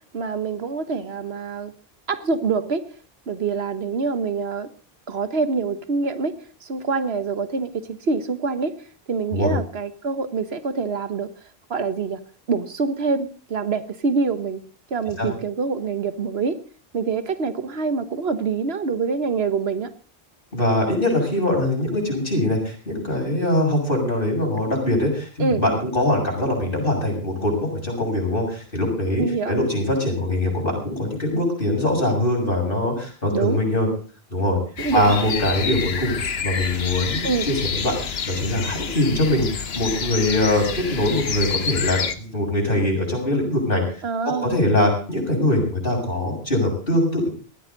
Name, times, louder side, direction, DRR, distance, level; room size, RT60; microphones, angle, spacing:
voice 1, 0.1-1.7 2.1-2.9 3.3-4.7 5.1-8.8 9.1-11.3 11.7-12.2 12.5-14.6 14.9-16.6 16.9-19.9 25.4-25.6 29.2-29.6 33.3-33.6 34.8-35.1 37.2-37.5 44.0-44.5, right 4 dB, 85° right, 11 dB, 1.5 m, -25 dB
voice 2, 20.5-33.9 34.3-34.6 34.9-36.2 36.4-44.0 44.4-47.3, left 1 dB, 60° left, 0 dB, 6.9 m, -22 dB
sound 1, 34.8-42.1, left 6 dB, 80° left, 1.3 m, -28 dB
19.0 x 14.5 x 4.0 m, 0.38 s
omnidirectional pair, 1.0 m